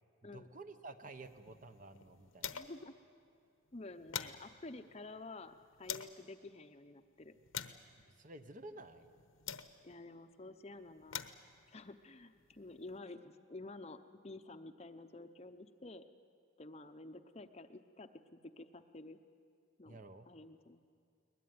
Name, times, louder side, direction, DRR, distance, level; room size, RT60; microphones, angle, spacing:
voice 1, 0.2-2.6 8.1-9.1 19.9-20.3, right 2 dB, 40° right, 9 dB, 1.0 m, -52 dB
sound 1, 1.1-2.9 3.2-3.3 3.7-6.2 6.8-10.1 10.8-13.0, left 9 dB, 80° left, 1.1 m, -48 dB
voice 2, 2.5-2.9 3.7-7.3 9.8-11.2 11.7-14.0 14.2-16.0 16.6-19.2 19.8-20.0 20.3-20.8, left 2 dB, 30° left, 9 dB, 0.8 m, -51 dB
22.0 x 20.5 x 9.5 m, 2.4 s
head